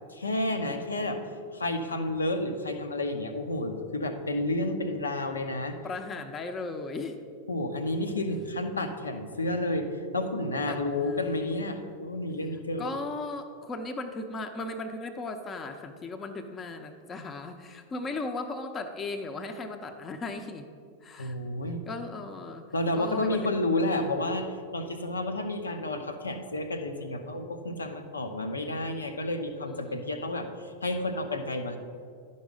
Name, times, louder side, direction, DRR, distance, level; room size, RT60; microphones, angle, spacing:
voice 1, 0.1-1.2 1.5-5.8 7.5-9.9 10.1-12.9 21.2-21.8 22.7-31.8, left 1 dB, 75° left, 7 dB, 0.7 m, -30 dB
voice 2, 5.8-7.2 10.7-11.6 12.8-20.7 21.0-21.4 21.9-22.7 22.9-24.5 29.7-30.4, left 3 dB, 25° left, 7 dB, 0.7 m, -37 dB
11.0 x 5.4 x 5.1 m, 2.2 s
figure-of-eight pair, 90°, 0 cm